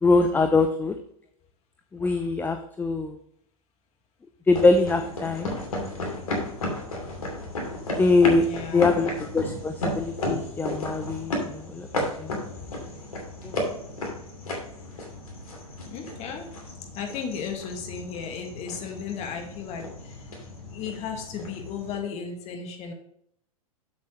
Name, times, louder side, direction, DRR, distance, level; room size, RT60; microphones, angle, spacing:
voice 1, 0.0-1.0 1.9-3.2 4.5-5.6 8.0-8.5 8.7-11.9 12.2-12.3 13.4-13.6, left 3 dB, 10° left, 7 dB, 0.5 m, -23 dB
sound 1, 4.5-22.0, left 1 dB, 75° left, 2.7 m, -34 dB
voice 2, 8.4-9.0 15.9-16.5 17.0-19.8 20.7-22.9, left 6 dB, 35° left, 3 dB, 2.0 m, -35 dB
7.9 x 7.3 x 3.2 m, 0.70 s
hypercardioid pair, 105°, 19 cm